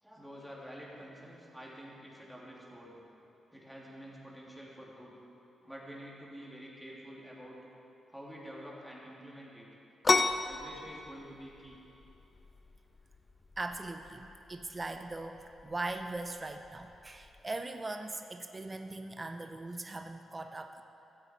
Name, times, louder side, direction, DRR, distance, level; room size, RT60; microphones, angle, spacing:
voice 1, 0.0-3.0 3.5-5.1 5.6-7.6 8.1-9.7 10.4-11.8, equal, 5° right, -4 dB, 2.6 m, -48 dB
sound 1, 10.0-17.4, left 3 dB, 35° left, 0.5 m, -35 dB
voice 2, 13.6-20.8, right 2 dB, 30° right, 6 dB, 0.6 m, -40 dB
14.0 x 8.1 x 4.4 m, 3.0 s
cardioid pair, 70°, 0 cm